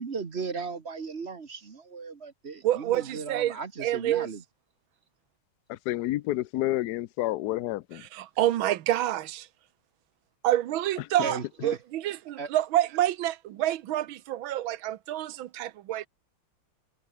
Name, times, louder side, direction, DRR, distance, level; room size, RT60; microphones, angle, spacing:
voice 1, 0.0-4.4 11.2-11.8 12.4-12.5, right 5 dB, 35° right, 1.5 m, -36 dB
voice 2, 2.6-4.3 8.1-9.5 10.4-16.1, right 13 dB, 75° right, 1.6 m, -28 dB
voice 3, 5.7-8.0, left 16 dB, 75° left, 0.9 m, -29 dB
omnidirectional pair, 2.3 m